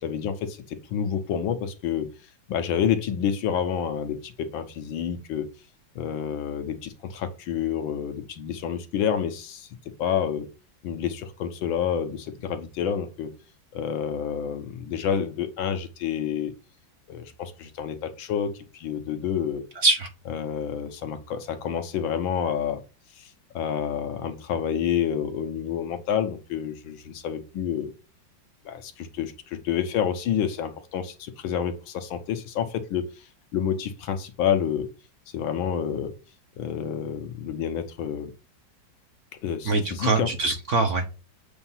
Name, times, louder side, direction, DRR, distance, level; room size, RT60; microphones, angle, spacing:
voice 1, 0.0-2.1 2.5-5.5 5.9-9.7 10.0-10.5 10.8-13.3 13.7-16.5 17.1-19.6 20.3-22.8 23.2-23.3 23.5-27.9 28.6-33.2 33.5-34.9 35.3-36.1 36.6-38.3 39.4-40.3, left 8 dB, 85° left, 1.7 m, -28 dB
voice 2, 39.7-41.1, right 3 dB, 55° right, 0.9 m, -23 dB
7.9 x 2.7 x 5.6 m
omnidirectional pair, 2.1 m